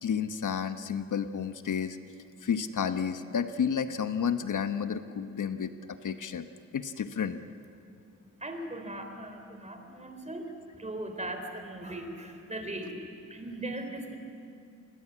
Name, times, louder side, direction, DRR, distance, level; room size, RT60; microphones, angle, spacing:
voice 1, 0.0-2.0 2.4-6.5 6.7-7.4, left 7 dB, 80° left, 10 dB, 1.1 m, -31 dB
voice 2, 8.4-10.5 10.7-14.2, right 1 dB, 20° right, 5 dB, 3.5 m, -39 dB
28.5 x 21.5 x 8.6 m, 2.5 s
wide cardioid pair, 105°, 31 cm